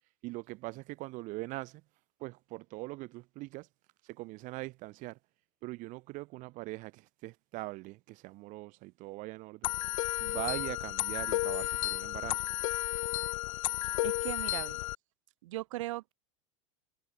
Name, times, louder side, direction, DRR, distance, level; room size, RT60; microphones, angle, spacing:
voice 1, 0.2-1.8 2.2-3.7 4.0-5.2 5.6-9.7 10.2-12.5, right 22 dB, 50° right, 1.4 m, -42 dB
sound 1, 9.6-14.9, left 16 dB, 75° left, 0.4 m, -33 dB
voice 2, 13.8-14.8 15.4-16.1, right 17 dB, 70° right, 0.6 m, -39 dB
hypercardioid pair, 95°, 17 cm